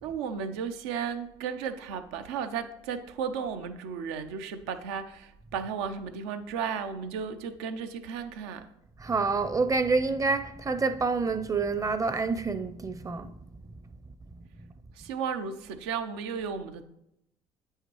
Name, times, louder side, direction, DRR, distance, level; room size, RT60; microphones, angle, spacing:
voice 1, 0.0-8.6 15.0-16.9, right 6 dB, 85° right, 0.6 m, -34 dB
voice 2, 9.0-13.3, right 4 dB, 25° right, 0.6 m, -27 dB
8.7 x 5.6 x 3.1 m
supercardioid pair, 70°, 13 cm